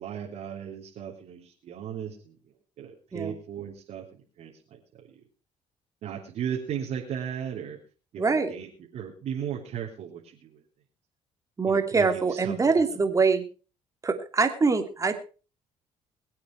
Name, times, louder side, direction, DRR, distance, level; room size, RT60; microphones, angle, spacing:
voice 1, 0.0-2.4 2.8-4.8 6.0-7.8 8.1-10.6 11.7-13.0, right 8 dB, 65° right, -2 dB, 3.4 m, -36 dB
voice 2, 8.2-8.5 11.6-13.4 14.0-15.2, right 4 dB, 25° right, 7 dB, 2.8 m, -24 dB
22.0 x 8.5 x 4.6 m, 0.36 s
cardioid pair, 95°, 12 cm